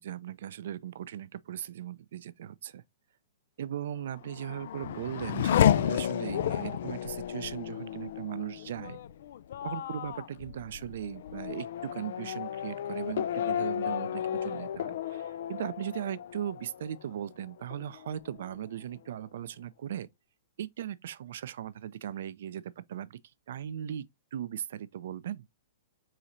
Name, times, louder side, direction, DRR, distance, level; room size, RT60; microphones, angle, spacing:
voice 1, 0.0-2.8 3.6-9.0 9.6-20.1 20.6-23.2 23.5-24.0 24.3-25.4, right 10 dB, 65° right, 0.4 m, -38 dB
Race car auto racing / Accelerating revving vroom, 4.1-17.3 17.7-18.4, left 10 dB, 65° left, 0.3 m, -32 dB
4.7 x 4.3 x 2.6 m
hypercardioid pair, 115°, 0 cm